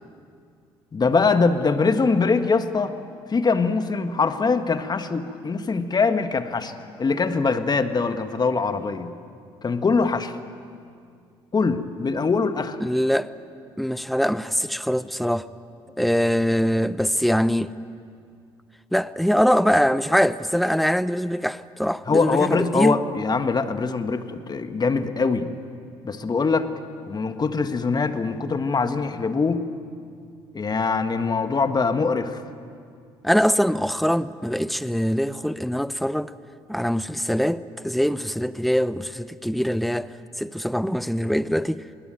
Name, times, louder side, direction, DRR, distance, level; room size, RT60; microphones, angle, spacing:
voice 1, 0.9-3.0 3.3-6.7 7.0-9.2 9.6-10.4 11.5-12.8 22.1-25.5 26.0-26.7 27.1-29.7 30.5-32.4, left 4 dB, 35° left, 1.7 m, -23 dB
voice 2, 12.8-13.3 13.8-15.5 16.0-17.7 18.9-23.0 33.2-36.3 36.7-41.8, equal, ahead, 0.8 m, -23 dB
26.5 x 20.0 x 9.2 m
hypercardioid pair, 60°, 12 cm